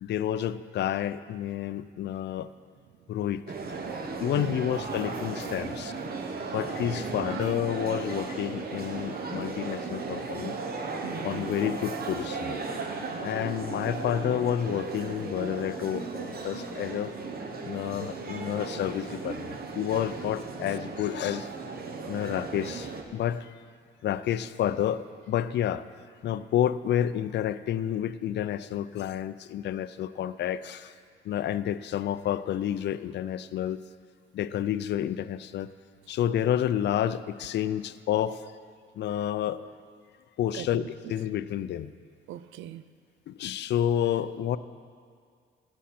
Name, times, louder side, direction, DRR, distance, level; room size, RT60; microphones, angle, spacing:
voice 1, 0.0-2.5 3.1-3.4 4.2-5.9 6.5-10.5 11.2-12.6 13.2-17.1 17.6-21.5 22.1-23.6 24.0-25.9 26.2-30.9 31.2-33.8 34.3-35.7 36.1-38.5 39.0-39.6 40.4-40.8 41.1-41.9 43.3-44.6, left 10 dB, 60° left, 0.4 m, -29 dB
sound 1, 3.5-23.0, right 4 dB, 50° right, 1.1 m, -36 dB
voice 2, 5.1-5.7 6.3-6.4 7.2-7.6 11.0-11.3 40.5-41.1 42.3-42.8, right 13 dB, 80° right, 0.4 m, -42 dB
16.5 x 7.2 x 4.3 m
cardioid pair, 90°, 20 cm